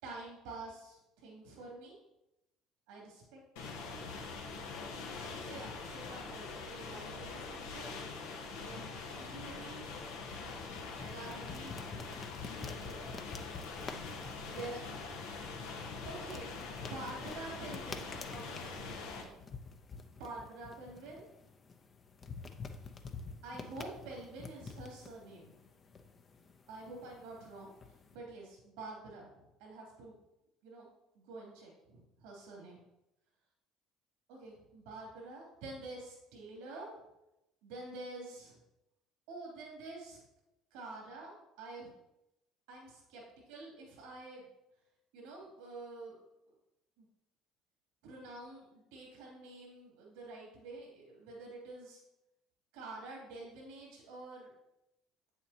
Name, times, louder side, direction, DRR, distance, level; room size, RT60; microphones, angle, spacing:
voice 1, 0.0-2.0 2.9-4.3 5.3-8.0 8.6-9.9 11.0-11.8 13.0-14.8 16.0-16.5 16.9-19.6 20.2-21.2 23.4-25.5 26.7-27.7 28.1-30.2 30.6-30.9 31.1-32.8 34.3-36.9 37.6-38.6 39.3-40.2 40.7-41.9 42.7-43.2 43.5-44.5 45.1-46.5 47.0-47.1 48.0-52.0 52.7-54.5, right 2 dB, 80° right, -3 dB, 2.7 m, -48 dB
sound 1, 3.6-19.2, left 4 dB, 85° left, 1.1 m, -43 dB
sound 2, 9.9-28.2, left 4 dB, 40° left, 0.7 m, -49 dB
7.9 x 7.1 x 2.9 m, 0.89 s
hypercardioid pair, 70°, 0 cm